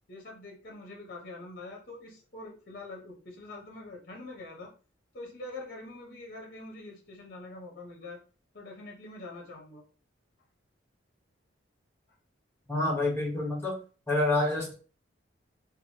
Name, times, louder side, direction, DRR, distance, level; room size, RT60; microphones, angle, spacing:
voice 1, 0.1-4.7 5.1-8.2 8.5-9.8, left 2 dB, 50° left, 0 dB, 0.6 m, -44 dB
voice 2, 12.7-13.8 14.1-14.7, left 2 dB, 10° left, -2 dB, 0.9 m, -27 dB
2.9 x 2.3 x 2.7 m, 0.38 s
head